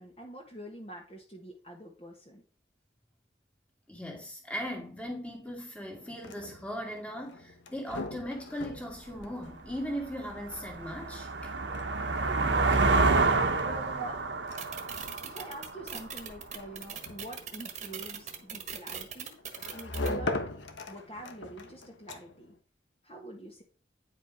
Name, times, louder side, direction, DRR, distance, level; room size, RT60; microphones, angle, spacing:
voice 1, 0.0-2.4 13.6-14.2 15.2-19.4 19.7-20.4 20.8-22.5 23.0-23.6, right 1 dB, 30° left, 1.6 m, -46 dB
voice 2, 3.9-11.5, equal, 5° left, 2.1 m, -38 dB
sound 1, 6.0-22.6, left 2 dB, 90° left, 1.1 m, -42 dB
sound 2, 9.2-9.3 9.8-16.4, right 3 dB, 75° right, 1.1 m, -28 dB
sound 3, 14.6-20.1, right 8 dB, 40° right, 1.4 m, -39 dB
9.8 x 5.1 x 5.1 m
head